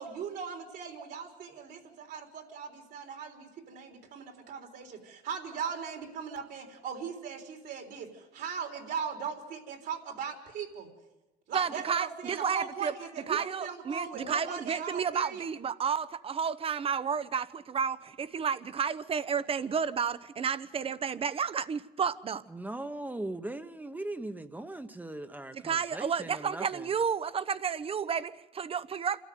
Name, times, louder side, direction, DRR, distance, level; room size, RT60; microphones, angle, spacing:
voice 1, 0.0-10.9 11.5-15.4, right 6 dB, 70° right, 3.8 m, -39 dB
voice 2, 11.5-12.9 13.3-22.4 25.5-29.2, right 6 dB, 35° right, 0.9 m, -31 dB
voice 3, 22.5-26.9, right 2 dB, 10° right, 1.1 m, -39 dB
26.5 x 13.5 x 9.4 m
cardioid pair, 110°, 17 cm